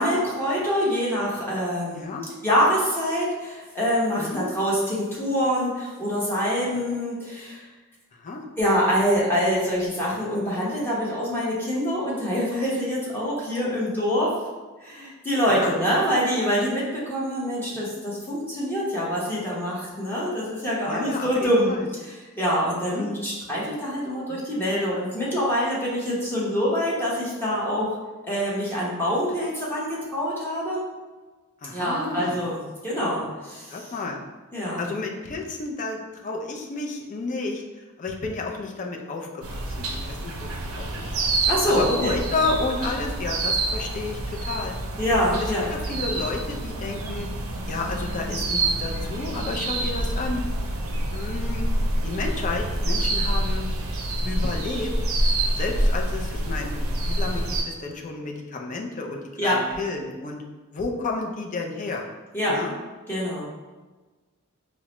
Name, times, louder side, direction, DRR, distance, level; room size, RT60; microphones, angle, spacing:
voice 1, 0.0-2.1 2.4-7.6 8.6-14.3 14.8-27.9 28.2-30.8 31.7-32.6 32.8-33.9 34.5-34.8 41.5-42.1 45.0-45.7 59.4-59.6 62.3-62.6 63.1-63.4, equal, 10° left, -7 dB, 1.0 m, -25 dB
voice 2, 1.9-2.3 4.2-4.5 8.2-8.4 15.5-16.1 17.7-17.9 20.9-21.9 22.9-23.1 24.3-24.4 31.6-32.4 33.7-34.2 34.8-37.6 38.0-41.1 41.7-44.7 45.3-47.3 47.7-50.4 51.1-51.7 52.0-53.7 54.2-54.9 55.6-60.4 60.7-62.1 62.5-62.7, left 3 dB, 40° left, 1 dB, 0.4 m, -31 dB
sound 1, 39.4-57.6, right 1 dB, 75° right, 0.5 m, -27 dB
4.7 x 2.1 x 2.9 m, 1.3 s
head